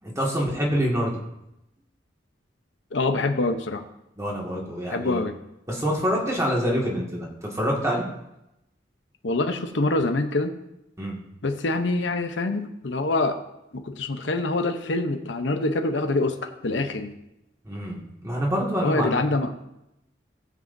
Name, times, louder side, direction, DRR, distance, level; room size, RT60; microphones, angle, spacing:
voice 1, 0.0-1.2 4.2-5.2 5.7-8.0 11.0-11.2 17.6-19.3, equal, 15° right, -2 dB, 1.9 m, -26 dB
voice 2, 2.9-3.8 4.9-5.3 9.2-10.5 11.4-13.4 13.7-17.2 18.8-19.5, left 2 dB, 75° left, 7 dB, 0.8 m, -25 dB
17.5 x 7.5 x 2.6 m, 0.86 s
head